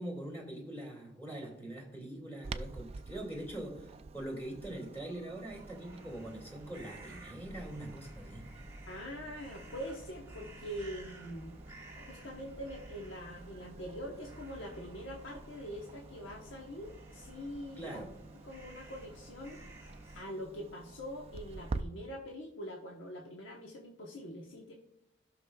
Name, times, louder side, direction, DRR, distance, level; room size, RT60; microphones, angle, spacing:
voice 1, 0.0-8.5 17.8-18.1, right 1 dB, 10° left, -1 dB, 2.2 m, -43 dB
Clock, 2.4-21.8, right 3 dB, 30° right, 0.3 m, -49 dB
sound 1, 5.5-20.2, right 1 dB, 15° right, 1.4 m, -52 dB
voice 2, 8.9-11.6 11.9-18.0 18.4-19.6 20.1-24.7, equal, 85° left, -1 dB, 1.1 m, -44 dB
15.0 x 6.2 x 2.3 m, 0.80 s
head